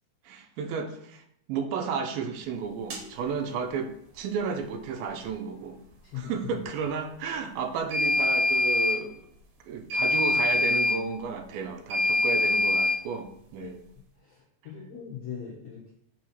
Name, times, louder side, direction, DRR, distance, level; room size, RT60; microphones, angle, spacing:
voice 1, 0.3-1.2 1.5-5.8 6.2-9.3 9.7-13.8, right 5 dB, 90° right, 5 dB, 2.4 m, -33 dB
sound 1, 2.9-3.0 7.9-9.0 9.9-11.0 11.9-13.0, left 2 dB, 70° right, 1.4 m, -24 dB
voice 2, 6.0-6.6 13.6-13.7 14.2-15.9, left 8 dB, 75° left, -4 dB, 1.4 m, -40 dB
6.1 x 2.8 x 5.5 m, 0.71 s
omnidirectional pair, 4.0 m